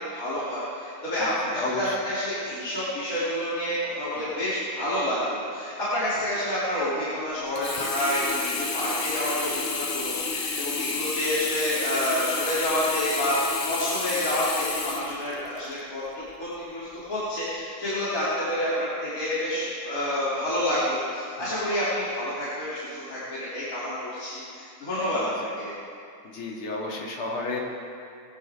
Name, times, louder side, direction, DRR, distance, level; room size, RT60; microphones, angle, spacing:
voice 1, 0.1-16.0 16.4-25.7, left 1 dB, 40° left, -11 dB, 3.4 m, -28 dB
voice 2, 1.2-2.0 21.4-21.5 25.1-25.3 26.2-27.6, left 2 dB, 85° left, -2 dB, 2.9 m, -32 dB
Sink (filling or washing), 7.6-15.8 16.3-16.4, left 4 dB, 65° left, 0.5 m, -31 dB
20.5 x 11.0 x 3.6 m, 2.4 s
omnidirectional pair, 2.3 m